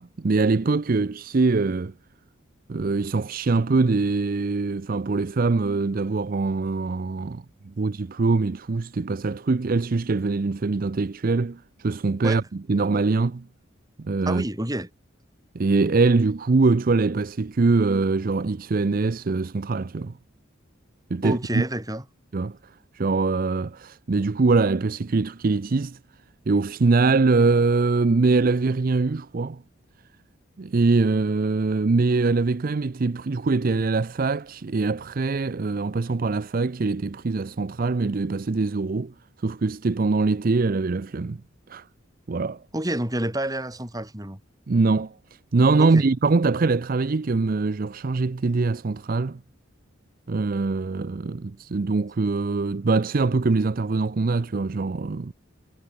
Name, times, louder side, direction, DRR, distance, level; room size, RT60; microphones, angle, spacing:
voice 1, 0.0-1.9 2.7-13.5 14.0-14.4 15.5-20.1 21.1-21.6 22.3-22.6 22.9-26.0 26.5-29.6 30.6-41.4 41.7-41.9 42.3-42.6 44.7-45.1 45.5-49.4 50.3-55.3, right 3 dB, 45° right, 0.5 m, -23 dB
voice 2, 14.3-14.9 21.2-22.0 42.7-44.4 45.8-46.0, right 1 dB, 20° right, 2.6 m, -28 dB
head